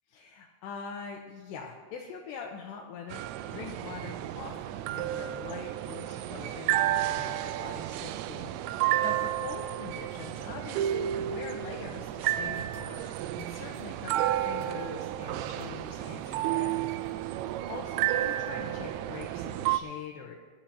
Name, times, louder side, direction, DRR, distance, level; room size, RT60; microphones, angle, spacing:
voice 1, 0.1-3.2 3.5-16.8 17.1-17.4 17.7-20.4, left 6 dB, 80° left, -1 dB, 2.9 m, -43 dB
sound 1, 3.1-19.8, right 13 dB, 85° right, 2.8 m, -32 dB
sound 2, 12.3-18.5, right 3 dB, 45° right, 3.8 m, -56 dB
21.5 x 11.5 x 2.9 m, 1.5 s
omnidirectional pair, 5.3 m